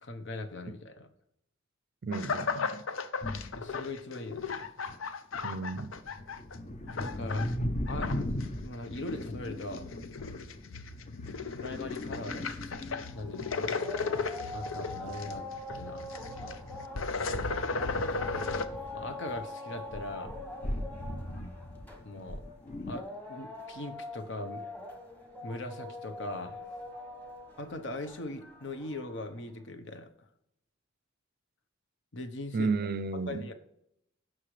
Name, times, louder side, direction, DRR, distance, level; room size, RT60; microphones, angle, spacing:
voice 1, 0.0-1.1 3.5-4.7 6.9-7.5 7.9-9.9 11.0-11.2 11.6-12.7 13.1-13.7 14.5-15.5 15.7-16.6 17.0-17.8 18.9-20.3 22.0-22.4 22.9-24.7 25.4-26.6 27.6-30.1 32.1-32.7 33.3-33.5, left 2 dB, 65° left, 1.0 m, -41 dB
voice 2, 2.0-2.8 5.4-5.9 32.5-33.5, right 4 dB, 50° right, 0.5 m, -33 dB
sound 1, 2.1-6.6 6.9-7.5 7.9-18.7, left 4 dB, 85° left, 0.7 m, -36 dB
sound 2, 3.2-3.7 4.3-5.0 5.3-13.7 14.1-19.4 19.7-23.0, left 1 dB, 35° left, 0.7 m, -39 dB
sound 3, 13.0-29.4, left 1 dB, 10° left, 1.3 m, -44 dB
16.5 x 6.2 x 3.3 m
head